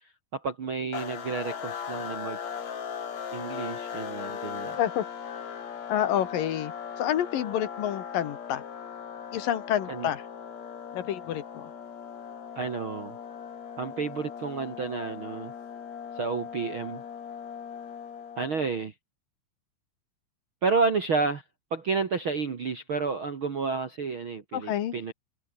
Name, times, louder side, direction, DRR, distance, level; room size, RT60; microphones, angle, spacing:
voice 1, 0.3-2.4 3.3-4.8 9.9-10.1 12.5-13.2 13.8-15.5 16.1-17.0 18.4-18.9 20.6-21.4 21.7-25.1, right 4 dB, 50° right, 1.5 m, -30 dB
sound 1, 0.9-18.8, left 7 dB, 45° left, 3.4 m, -39 dB
voice 2, 5.9-8.6 9.3-10.2 10.9-11.7 24.5-24.9, left 11 dB, 60° left, 2.8 m, -28 dB
omnidirectional pair, 5.0 m